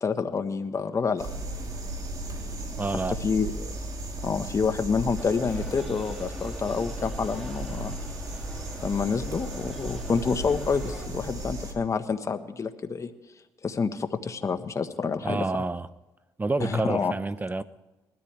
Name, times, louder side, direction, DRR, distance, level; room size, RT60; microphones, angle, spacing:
voice 1, 0.0-1.3 3.2-3.7 4.2-7.9 8.8-13.1 13.6-15.4 16.6-17.1, left 5 dB, 40° left, 1.3 m, -28 dB
sound 1, 1.2-11.7, right 1 dB, 50° right, 3.4 m, -35 dB
voice 2, 2.8-3.2 15.2-15.9 16.4-17.6, right 3 dB, 20° right, 0.7 m, -28 dB
sound 2, 5.2-11.1, left 1 dB, ahead, 2.8 m, -45 dB
20.5 x 13.5 x 3.4 m
cardioid pair, 75°, 8 cm